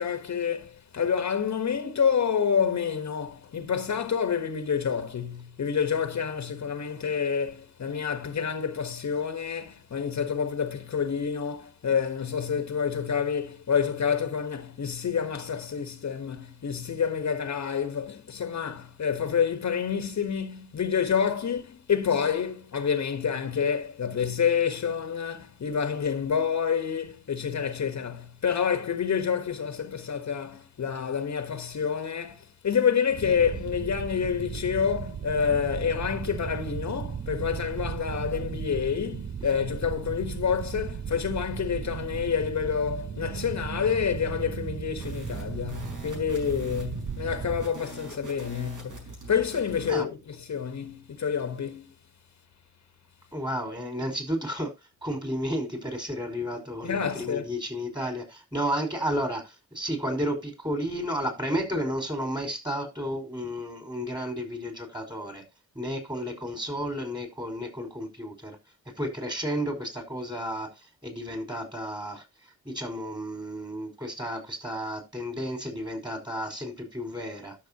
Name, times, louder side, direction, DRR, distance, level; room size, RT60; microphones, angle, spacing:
voice 1, 0.0-51.9 56.8-57.5, left 7 dB, 60° left, 1.4 m, -28 dB
sound 1, 33.1-47.7, right 8 dB, 35° right, 0.5 m, -36 dB
sound 2, 44.9-50.0, right 3 dB, 75° right, 5.6 m, -43 dB
voice 2, 53.3-54.7 55.0-65.4 65.8-68.6 69.0-70.7 71.0-72.2 72.7-77.6, equal, 15° right, 5.1 m, -32 dB
13.0 x 6.7 x 2.9 m
cardioid pair, 65°, 31 cm